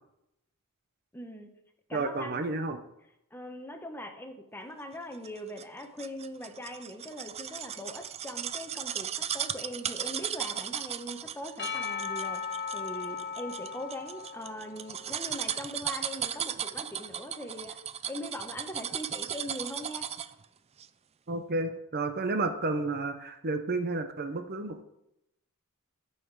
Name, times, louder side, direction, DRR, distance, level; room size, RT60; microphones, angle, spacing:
voice 1, 1.1-1.5 1.9-2.5 3.3-12.4 12.7-17.8 18.1-20.1, equal, 10° left, 5 dB, 1.0 m, -41 dB
voice 2, 1.9-2.8 21.3-24.8, right 3 dB, 45° right, 8 dB, 0.8 m, -31 dB
sound 1, 5.2-20.4 20.8-20.9, right 9 dB, 30° right, 0.4 m, -36 dB
Percussion / Church bell, 11.6-15.8, left 6 dB, 50° left, 1.5 m, -37 dB
14.5 x 5.7 x 4.7 m, 0.85 s
head